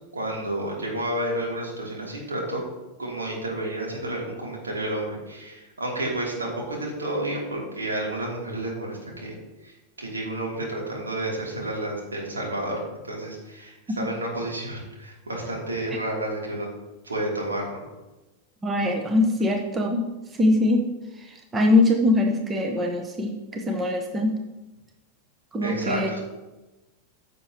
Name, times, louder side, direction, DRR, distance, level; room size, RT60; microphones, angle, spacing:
voice 1, 0.1-2.6 3.0-9.3 9.6-16.7 17.0-17.8 25.6-26.2, right 1 dB, 75° right, -3 dB, 3.0 m, -30 dB
voice 2, 18.6-20.1 20.4-20.8 21.2-24.4 25.5-26.1, left 2 dB, 20° right, 3 dB, 1.1 m, -22 dB
15.0 x 6.8 x 3.0 m, 1.1 s
figure-of-eight pair, 90°, 0 cm